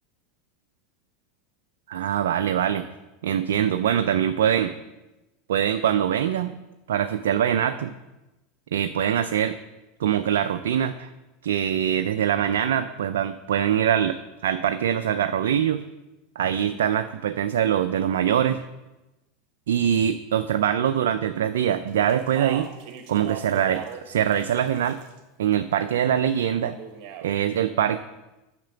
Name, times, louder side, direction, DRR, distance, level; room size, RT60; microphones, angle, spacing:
voice 1, 1.9-2.9 3.2-4.7 5.5-6.5 6.9-7.9 8.7-9.6 10.0-11.1 11.4-14.2 14.4-15.8 16.4-18.6 19.7-22.7 23.1-25.0 25.4-26.7 27.2-28.0, right 9 dB, 85° right, 8 dB, 0.4 m, -23 dB
Speech, 22.1-24.0 24.3-25.2 26.6-27.3, right 8 dB, 60° right, 1.2 m, -37 dB
7.4 x 5.8 x 6.9 m, 1.0 s
hypercardioid pair, 100°, 0 cm